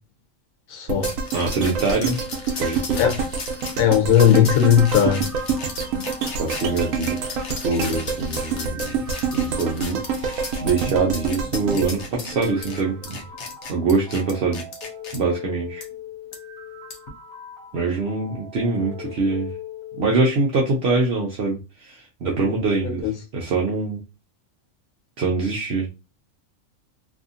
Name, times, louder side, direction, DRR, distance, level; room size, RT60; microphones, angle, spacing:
voice 1, 0.7-1.1 3.0-3.1 3.8-5.2 23.0-23.1, left 9 dB, 90° left, 1.1 m, -17 dB
sound 1, 0.9-13.1 13.5-13.6, right 5 dB, 85° right, 1.0 m, -27 dB
sound 2, 1.0-15.2 15.8-15.9 16.3-16.4 16.9-17.1, left 4 dB, 65° left, 0.9 m, -36 dB
voice 2, 1.3-2.2 2.6-3.1 4.9-5.1 6.4-7.2 7.6-9.0 9.3-13.2 13.7-14.7 15.1-15.8 17.7-19.5 20.0-24.0 25.2-25.9, right 3 dB, 60° right, 0.8 m, -24 dB
sound 3, 4.3-20.3, left 4 dB, 5° left, 0.7 m, -41 dB
2.7 x 2.6 x 2.4 m
omnidirectional pair, 1.3 m